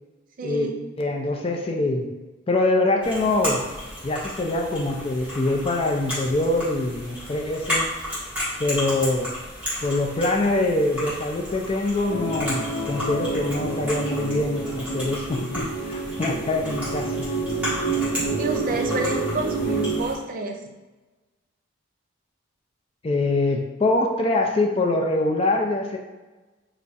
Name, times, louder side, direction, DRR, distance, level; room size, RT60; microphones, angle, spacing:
voice 1, 0.4-0.7 18.4-20.6, right 3 dB, 45° right, 3 dB, 0.4 m, -29 dB
voice 2, 1.0-2.1 2.5-3.6 4.0-7.9 8.6-9.3 9.8-17.1 23.0-26.0, left 2 dB, 30° left, 2 dB, 0.4 m, -24 dB
sound 1, 3.0-20.1, left 1 dB, 5° right, 1.3 m, -33 dB
sound 2, 12.1-20.0, right 3 dB, 65° left, 0.7 m, -28 dB
3.4 x 2.0 x 4.1 m, 1.2 s
head